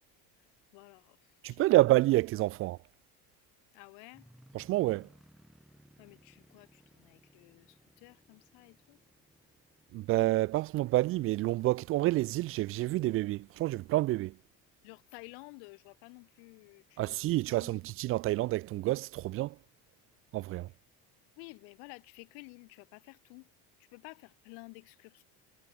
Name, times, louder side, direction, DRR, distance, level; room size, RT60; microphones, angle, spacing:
voice 1, 0.7-1.9 3.7-4.3 6.0-9.0 14.8-17.8 21.4-23.5 23.9-25.2, left 38 dB, 85° left, 2.7 m, -52 dB
voice 2, 1.4-2.8 4.5-5.1 9.9-14.4 17.0-19.6 20.3-20.7, right 17 dB, 35° right, 0.4 m, -28 dB
sound 1, 4.1-21.2 21.8-21.9 22.4-22.6, equal, ahead, 6.8 m, -66 dB
cardioid pair, 170°, 39 cm